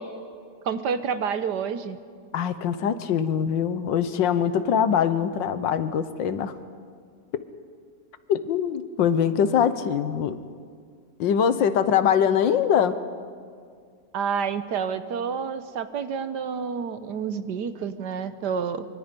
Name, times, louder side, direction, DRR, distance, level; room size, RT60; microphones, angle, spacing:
voice 1, 0.6-2.0 14.1-18.8, right 6 dB, 70° right, 11 dB, 1.4 m, -29 dB
voice 2, 2.3-6.5 8.3-10.4 11.2-13.0, left 8 dB, 75° left, 12 dB, 1.6 m, -23 dB
24.5 x 24.0 x 5.3 m, 2.1 s
omnidirectional pair, 2.0 m